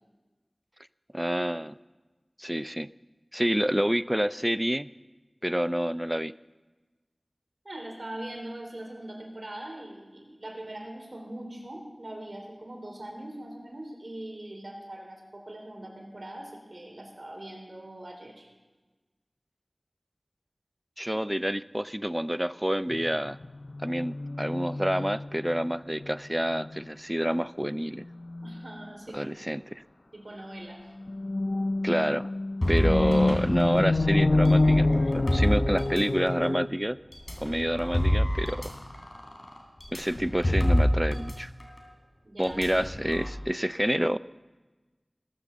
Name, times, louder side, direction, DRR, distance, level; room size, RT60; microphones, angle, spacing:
voice 1, 1.1-1.8 2.4-2.9 3.3-4.9 5.4-6.3 21.0-23.4 23.8-28.0 29.1-29.8 31.8-32.3 32.7-37.0 37.4-38.7 39.9-41.5 42.4-44.2, equal, 10° right, 16 dB, 0.4 m, -28 dB
voice 2, 7.6-18.5 21.1-21.3 28.4-29.5 30.1-30.8 42.2-42.6, right 1 dB, 70° right, 2 dB, 3.5 m, -41 dB
sound 1, 22.9-25.7 26.0-26.2 26.5-26.9 28.2-28.6 31.0-36.7, left 2 dB, 75° left, 0.4 m, -27 dB
sound 2, 32.6-36.5 37.1-41.3 41.6-41.8 42.4-43.3, left 1 dB, 55° left, 3.5 m, -28 dB
20.5 x 7.9 x 7.0 m, 1.2 s
wide cardioid pair, 45°, 0 cm